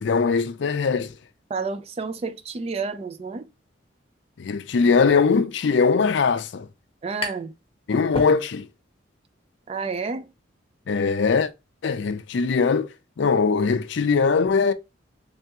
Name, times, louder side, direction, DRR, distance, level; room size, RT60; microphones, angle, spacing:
voice 1, 0.0-1.1 4.4-6.7 7.9-8.7 10.9-11.5 11.8-12.9 13.2-14.7, left 5 dB, 65° left, 0.4 m, -21 dB
voice 2, 1.5-3.5 7.0-7.5 9.7-10.3, right 4 dB, 30° right, 0.3 m, -30 dB
sound 1, 7.2-7.6 7.9-8.9, left 2 dB, 25° left, 0.9 m, -32 dB
3.4 x 3.3 x 2.8 m
head